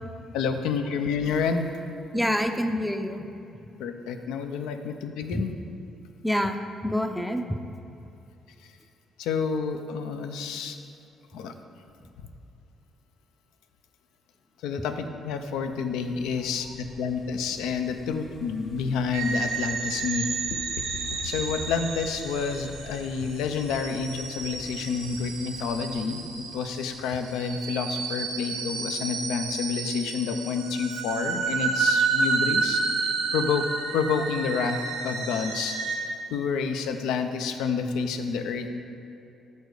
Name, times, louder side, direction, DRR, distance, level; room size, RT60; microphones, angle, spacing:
voice 1, 0.3-1.7 3.8-5.5 9.2-10.8 11.3-11.5 14.6-20.4 20.9-33.7 33.9-38.7, left 5 dB, 75° left, 7 dB, 0.4 m, -29 dB
voice 2, 2.1-3.3 5.3-5.5 6.2-7.5, equal, 5° left, 6 dB, 0.4 m, -27 dB
sound 1, 14.9-27.6, left 2 dB, 55° left, 1.4 m, -49 dB
sound 2, 19.1-36.0, right 4 dB, 75° right, 0.8 m, -30 dB
6.2 x 4.0 x 4.8 m, 2.8 s
hypercardioid pair, 50°, 0 cm